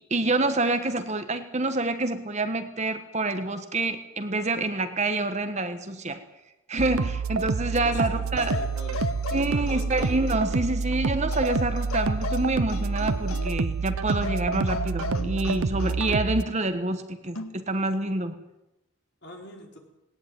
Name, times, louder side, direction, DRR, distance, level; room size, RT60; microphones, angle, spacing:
voice 1, 0.0-6.2 6.7-8.5 9.3-18.3, right 2 dB, 30° right, 9 dB, 1.3 m, -27 dB
sound 1, 6.8-16.4, right 4 dB, 80° right, 0.7 m, -28 dB
voice 2, 7.7-9.2 9.5-10.0 19.2-19.8, left 1 dB, 50° left, 1 dB, 4.6 m, -43 dB
sound 2, 8.4-10.6 11.3-13.7 14.1-16.3 17.3-17.6, left 3 dB, 75° left, 2.0 m, -36 dB
19.0 x 18.5 x 9.3 m, 0.94 s
head